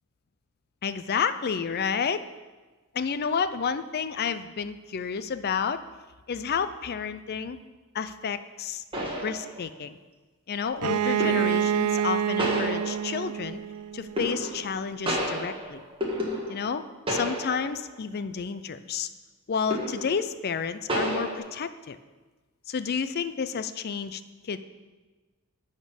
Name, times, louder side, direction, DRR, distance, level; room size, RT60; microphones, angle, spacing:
voice 1, 0.8-2.3 2.9-5.8 6.3-7.6 7.9-8.8 9.2-10.0 10.5-13.6 13.9-15.8 16.5-16.8 17.1-19.1 19.5-22.0 22.7-24.6, left 6 dB, 45° left, 12 dB, 0.4 m, -30 dB
sound 1, 8.3-8.4 8.9-9.9 11.2-11.7 12.4-13.3 14.2-14.8 15.1-16.8 17.1-17.8 18.2-18.4 19.7-20.2 20.9-21.4, equal, 25° right, 1.5 m, -31 dB
Bowed string instrument, 10.8-14.5, right 9 dB, 85° right, 0.3 m, -27 dB
11.0 x 4.4 x 6.9 m, 1.3 s
head